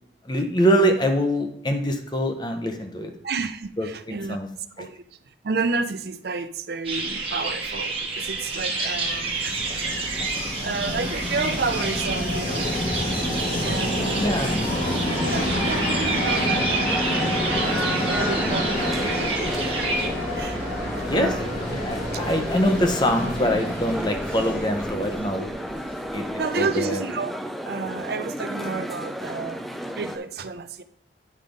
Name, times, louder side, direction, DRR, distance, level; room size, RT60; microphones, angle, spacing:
voice 1, 0.2-3.1 3.8-3.9 4.3-4.5 4.8-4.9 14.2-14.6 20.8-21.3 21.6-25.5 26.1-27.0, equal, 25° left, 5 dB, 0.8 m, -24 dB
voice 2, 3.2-4.4 4.8-5.0 5.4-9.8 10.6-12.7 13.6-14.4 15.2-17.0 17.6-20.1 20.3-21.6 22.1-22.2 26.4-27.3 27.6-30.8, right 4 dB, 55° right, 10 dB, 0.5 m, -31 dB
sound 1, 6.8-20.1, right 3 dB, 30° right, 1.3 m, -29 dB
Train, 8.5-26.2, left 1 dB, 45° left, 2.1 m, -28 dB
sound 2, 16.9-30.2, equal, ahead, 0.5 m, -33 dB
9.6 x 3.7 x 5.1 m, 0.69 s
head